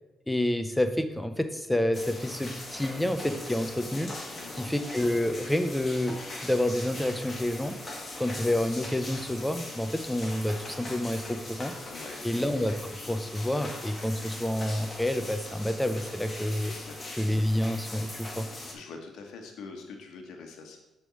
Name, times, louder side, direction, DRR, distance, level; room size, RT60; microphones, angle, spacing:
voice 1, 0.3-4.1 4.5-7.8 8.2-11.7 12.2-16.8 17.1-18.5, left 1 dB, 5° left, 10 dB, 0.6 m, -29 dB
sound 1, 1.9-18.7, left 2 dB, 25° left, 1.6 m, -41 dB
voice 2, 4.3-4.7 11.9-12.2 16.7-17.2 18.7-20.8, left 4 dB, 80° left, 3 dB, 1.1 m, -44 dB
6.8 x 3.5 x 6.2 m, 0.97 s
cardioid pair, 90°, 0 cm